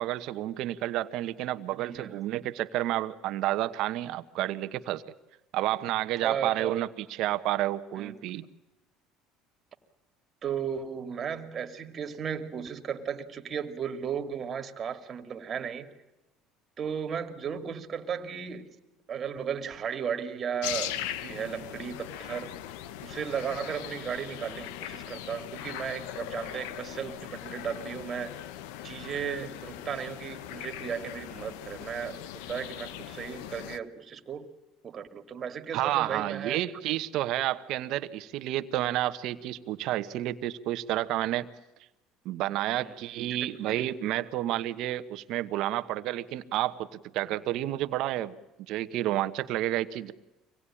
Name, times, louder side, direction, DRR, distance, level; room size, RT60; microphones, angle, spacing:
voice 1, 0.0-5.0 5.5-8.4 35.7-41.5 42.2-46.9 47.1-48.3 48.7-50.1, right 14 dB, 60° right, 11 dB, 1.1 m, -30 dB
voice 2, 1.7-2.2 6.2-6.7 8.0-8.1 10.4-15.9 16.8-18.7 19.1-22.5 23.0-28.4 28.8-32.2 32.5-34.5 34.8-36.6 42.7-43.0 43.3-43.6, right 7 dB, 35° right, 7 dB, 2.4 m, -35 dB
sound 1, 20.6-33.8, left 12 dB, 85° left, 1.0 m, -40 dB
25.0 x 18.5 x 10.0 m, 1.0 s
cardioid pair, 125°, 0 cm